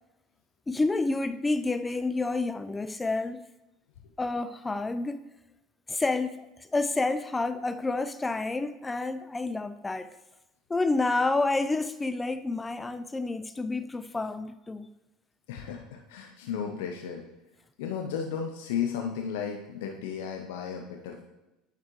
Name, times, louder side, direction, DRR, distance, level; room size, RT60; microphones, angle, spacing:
voice 1, 0.7-3.4 4.2-5.2 5.9-10.2 10.7-14.9, left 3 dB, 15° left, 0.3 m, -29 dB
voice 2, 15.5-17.2 17.8-21.3, left 7 dB, 75° left, 0.7 m, -34 dB
9.2 x 5.2 x 3.1 m
hypercardioid pair, 85°, 0 cm